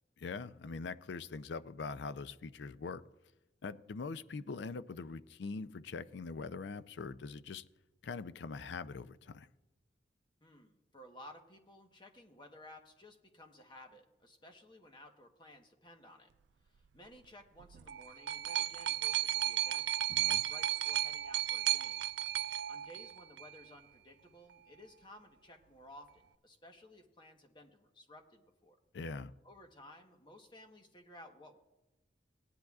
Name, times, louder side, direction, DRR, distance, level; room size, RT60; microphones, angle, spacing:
voice 1, 0.2-3.0 3.6-7.6 8.0-9.5 20.1-20.4 28.9-29.3, left 4 dB, 75° left, 13 dB, 0.4 m, -43 dB
voice 2, 10.4-16.3 16.7-19.9 20.2-22.1 22.7-28.8 29.4-31.6, left 1 dB, 25° left, 4 dB, 1.1 m, -56 dB
sound 1, 17.6-23.6 24.5-24.6, right 12 dB, 75° right, 0.3 m, -34 dB
18.0 x 10.5 x 2.4 m, 1.0 s
head